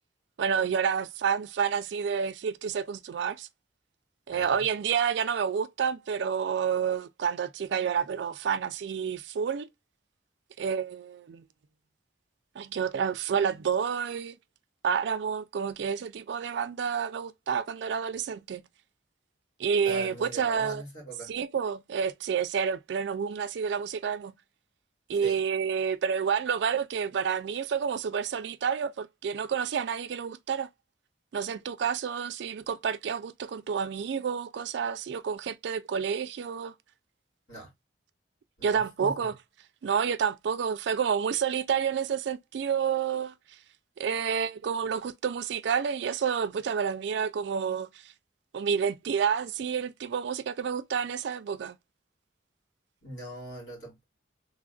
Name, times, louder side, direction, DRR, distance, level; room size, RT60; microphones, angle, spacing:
voice 1, 0.4-3.5 4.3-9.7 10.6-11.4 12.6-14.4 14.8-18.6 19.6-20.8 21.3-24.3 25.1-30.7 31.3-36.7 38.6-39.3 39.8-43.3 44.0-48.1 48.5-51.8, right 7 dB, 65° right, 0.3 m, -29 dB
voice 2, 4.3-4.6 19.8-21.3 25.2-25.4 37.5-37.7 38.6-39.3 53.0-54.0, right 1 dB, 90° left, 2.4 m, -42 dB
3.4 x 2.4 x 2.3 m
head